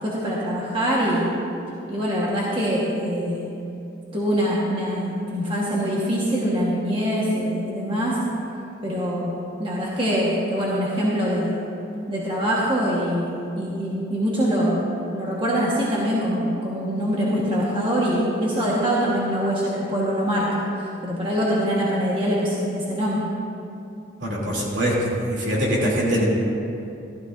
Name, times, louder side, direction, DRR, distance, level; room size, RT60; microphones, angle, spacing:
voice 1, 0.0-1.3 1.9-3.4 4.1-8.2 8.8-11.5 12.1-13.3 13.6-14.8 15.1-23.2, equal, 25° right, -6 dB, 1.3 m, -24 dB
voice 2, 24.2-26.2, equal, 70° right, -5 dB, 2.9 m, -23 dB
14.5 x 12.5 x 2.6 m, 2.7 s
head